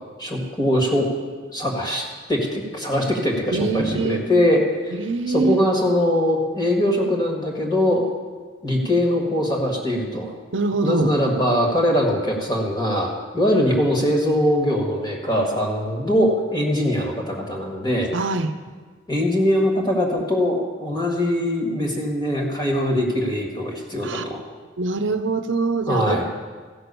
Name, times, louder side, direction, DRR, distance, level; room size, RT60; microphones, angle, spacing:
voice 1, 0.2-1.1 1.5-4.9 5.3-8.0 8.6-10.3 10.8-18.1 19.1-24.4 25.9-26.2, left 1 dB, 20° left, 0 dB, 1.6 m, -22 dB
voice 2, 3.5-4.3 4.9-5.6 10.5-11.2 18.1-18.5 24.0-24.2 24.8-26.3, right 3 dB, 70° right, 9 dB, 0.7 m, -23 dB
15.0 x 6.1 x 6.8 m, 1.5 s
head